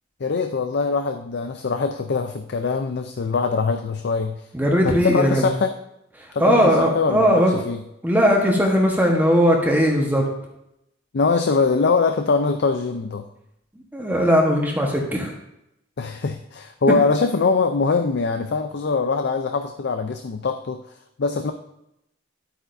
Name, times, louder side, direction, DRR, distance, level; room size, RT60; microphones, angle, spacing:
voice 1, 0.2-4.5 4.8-5.7 6.3-7.8 11.1-13.3 16.0-20.8 21.2-21.5, left 4 dB, 60° left, 7 dB, 0.5 m, -22 dB
voice 2, 4.5-5.5 6.2-7.5 8.0-10.3 13.9-15.3, equal, 10° right, 0 dB, 1.2 m, -19 dB
11.5 x 8.4 x 2.6 m, 0.82 s
head